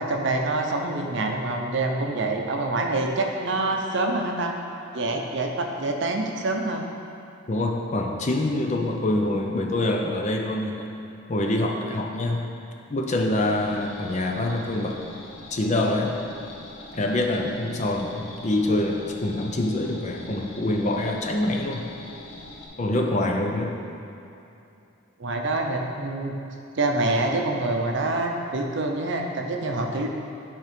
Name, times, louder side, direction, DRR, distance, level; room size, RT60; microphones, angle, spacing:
voice 1, 0.0-4.6 4.9-6.9 25.2-26.3 26.7-30.1, right 2 dB, 55° right, 2 dB, 0.6 m, -26 dB
voice 2, 7.5-10.9 11.3-12.4 12.9-15.0 15.5-16.2 17.0-21.9 22.8-23.8, left 1 dB, 35° left, 2 dB, 0.5 m, -25 dB
sound 1, 13.4-22.7, left 2 dB, 70° left, 0.9 m, -43 dB
9.1 x 3.6 x 5.1 m, 2.8 s
head